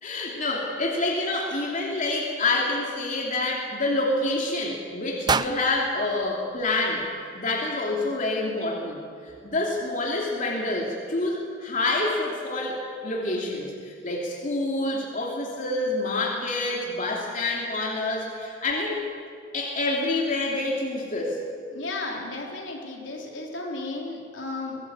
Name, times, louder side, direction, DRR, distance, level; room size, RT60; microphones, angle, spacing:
voice 1, 0.0-7.1 7.3-9.0 9.4-19.1 19.5-21.4, left 2 dB, 45° left, -2 dB, 2.9 m, -27 dB
sound 1, 5.3-7.4, right 4 dB, 25° right, 0.5 m, -30 dB
voice 2, 21.7-24.8, left 2 dB, 75° left, -1 dB, 4.1 m, -34 dB
22.5 x 17.5 x 8.4 m, 2.1 s
head